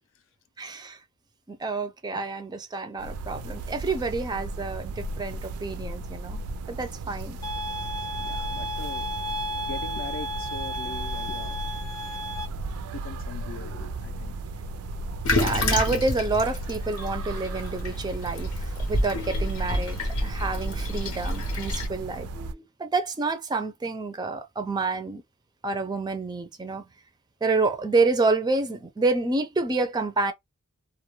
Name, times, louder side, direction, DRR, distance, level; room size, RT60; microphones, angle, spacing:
voice 1, 0.6-1.0 1.5-7.4 15.3-25.2 25.6-26.8 27.4-30.3, right 3 dB, 20° right, 0.4 m, -28 dB
sound 1, 3.0-22.5, right 2 dB, 85° right, 0.4 m, -35 dB
sound 2, 7.4-12.5, left 1 dB, 15° left, 0.6 m, -33 dB
voice 2, 8.2-9.1 9.7-11.6 12.6-14.3, left 4 dB, 60° left, 0.5 m, -41 dB
Toilet flush, 15.2-21.9, left 1 dB, 90° left, 0.8 m, -29 dB
2.2 x 2.1 x 3.0 m
head